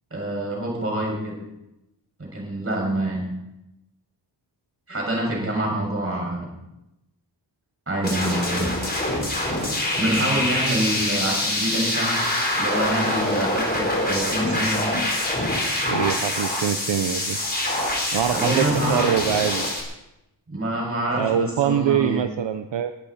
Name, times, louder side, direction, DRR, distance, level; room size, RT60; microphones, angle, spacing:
voice 1, 0.1-1.3 2.2-3.3 4.9-6.5 7.9-8.7 10.0-12.1 12.6-14.9 18.3-19.1 20.5-22.2, right 1 dB, 30° right, -1 dB, 6.5 m, -26 dB
sound 1, 8.0-19.8, left 1 dB, 20° left, 4.3 m, -25 dB
voice 2, 15.9-17.4 18.1-18.6 18.9-19.6 21.1-22.9, right 9 dB, 75° right, 9 dB, 0.8 m, -23 dB
22.5 x 13.5 x 4.3 m, 0.90 s
wide cardioid pair, 175°, 44 cm